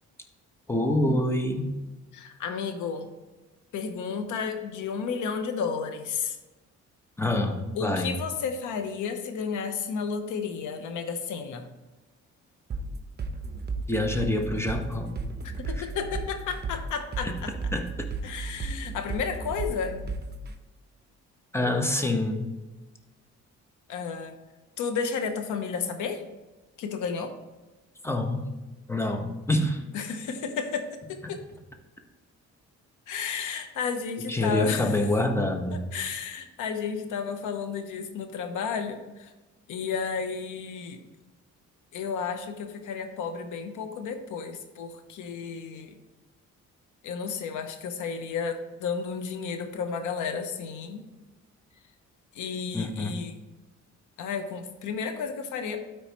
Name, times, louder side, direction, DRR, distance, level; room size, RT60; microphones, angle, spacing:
voice 1, 0.7-1.7 7.2-8.1 13.9-15.2 15.8-15.9 17.2-17.3 17.7-17.8 21.5-22.5 28.0-28.5 28.9-29.8 31.2-31.3 34.3-35.8 52.7-53.1, left 1 dB, 10° left, 4 dB, 1.2 m, -26 dB
voice 2, 2.1-3.1 3.7-6.4 7.7-11.7 15.4-17.6 18.2-20.0 23.9-24.3 24.8-26.2 26.8-27.3 29.9-31.4 33.1-35.1 35.7-39.3 39.7-41.0 41.9-45.9 47.0-51.1 52.3-53.4 54.2-55.8, left 6 dB, 85° left, 7 dB, 1.0 m, -32 dB
sound 1, 12.7-20.5, right 4 dB, 35° right, 0.9 m, -34 dB
12.5 x 4.7 x 3.1 m, 1.2 s
cardioid pair, 90°, 30 cm